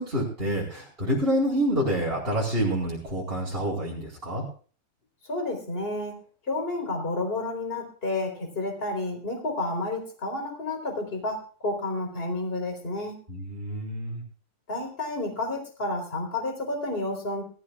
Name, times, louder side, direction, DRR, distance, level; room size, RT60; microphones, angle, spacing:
voice 1, 0.0-4.4 13.3-14.2, equal, 15° right, -5 dB, 4.2 m, -27 dB
voice 2, 5.3-6.2 6.5-13.2 14.7-17.4, left 2 dB, 15° left, 3 dB, 3.8 m, -30 dB
22.0 x 14.0 x 2.4 m, 0.40 s
omnidirectional pair, 4.4 m